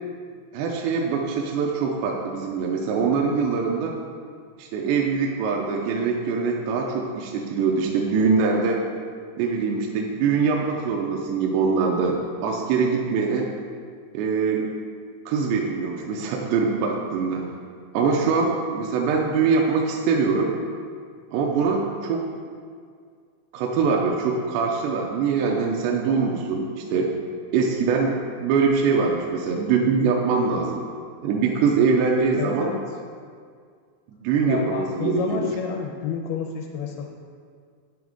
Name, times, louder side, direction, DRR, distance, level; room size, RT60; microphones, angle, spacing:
voice 1, 0.5-3.9 4.6-8.8 9.4-13.5 14.1-14.7 15.3-17.5 17.9-20.5 21.3-22.2 23.5-27.1 27.5-30.8 31.2-32.7 34.1-35.5, right 5 dB, 80° right, -1 dB, 2.7 m, -23 dB
voice 2, 32.4-32.8 34.5-37.1, left 7 dB, 80° left, 1 dB, 2.3 m, -30 dB
10.0 x 9.4 x 3.6 m, 2.1 s
omnidirectional pair, 5.2 m